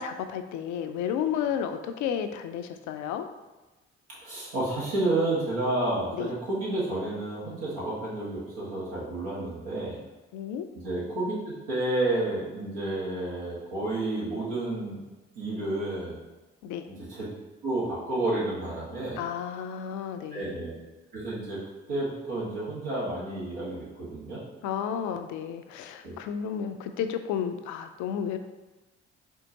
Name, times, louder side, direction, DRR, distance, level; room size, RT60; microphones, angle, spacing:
voice 1, 0.0-3.3 6.1-6.3 10.3-10.7 16.6-16.9 19.2-20.7 24.6-28.4, left 8 dB, 70° left, 8 dB, 0.5 m, -32 dB
voice 2, 4.1-10.0 10.8-15.0 15.3-16.2 16.9-17.3 17.6-19.2 20.3-20.7 21.1-21.6 21.9-24.4 26.0-26.1, right 2 dB, 80° right, -7 dB, 1.5 m, -30 dB
4.4 x 3.7 x 2.8 m, 1.1 s
hypercardioid pair, 45°, 31 cm